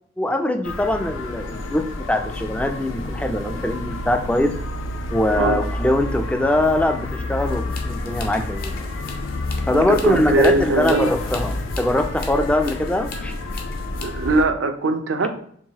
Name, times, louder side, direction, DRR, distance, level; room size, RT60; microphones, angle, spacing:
voice 1, 0.2-4.5 5.1-8.9 9.7-13.3, left 1 dB, 5° left, 6 dB, 0.3 m, -22 dB
sound 1, 0.6-14.5, left 2 dB, 90° left, 0.5 m, -29 dB
sound 2, 7.5-14.1, left 4 dB, 50° left, 0.6 m, -39 dB
voice 2, 9.7-11.1 14.0-15.3, right 3 dB, 75° right, 7 dB, 0.5 m, -21 dB
4.7 x 3.1 x 2.7 m, 0.62 s
head